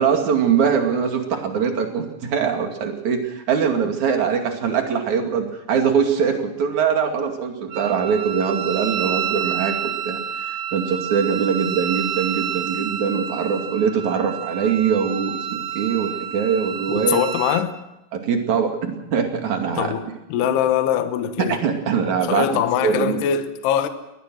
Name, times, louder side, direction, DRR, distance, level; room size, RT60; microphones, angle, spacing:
voice 1, 0.0-17.2 18.1-19.9 21.5-22.5 22.8-23.2, right 6 dB, 45° right, 3.3 m, -22 dB
Wind instrument woodwind instrument, 7.7-17.7, right 8 dB, 90° right, 1.7 m, -29 dB
voice 2, 16.9-17.8 19.8-21.6 22.2-23.9, left 9 dB, 70° left, 3.0 m, -22 dB
22.5 x 19.0 x 6.3 m
omnidirectional pair, 5.3 m